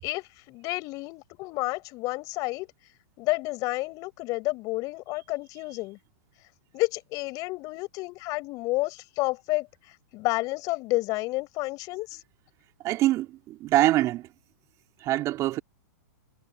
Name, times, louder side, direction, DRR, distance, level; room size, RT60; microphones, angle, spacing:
voice 1, 0.0-2.7 3.2-6.0 6.7-9.7 10.1-12.2, left 22 dB, 40° left, 7.3 m, -30 dB
voice 2, 12.8-14.3 15.0-15.6, right 15 dB, 35° right, 2.4 m, -24 dB
hypercardioid pair, 125°, 9 cm